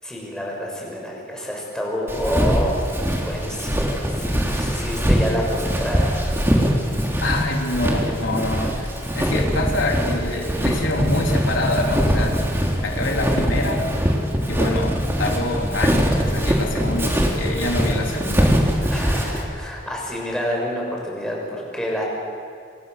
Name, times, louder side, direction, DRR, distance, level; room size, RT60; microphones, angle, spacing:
voice 1, 0.0-2.7 3.2-6.1 18.9-22.0, equal, 5° left, -2 dB, 6.5 m, -28 dB
Walk footsteps, 2.1-19.4, equal, 15° right, 3.3 m, -22 dB
voice 2, 7.2-8.9 9.1-12.3 12.8-13.9 14.5-18.5, left 2 dB, 75° left, 0 dB, 3.9 m, -25 dB
28.5 x 26.0 x 6.8 m, 2.5 s
head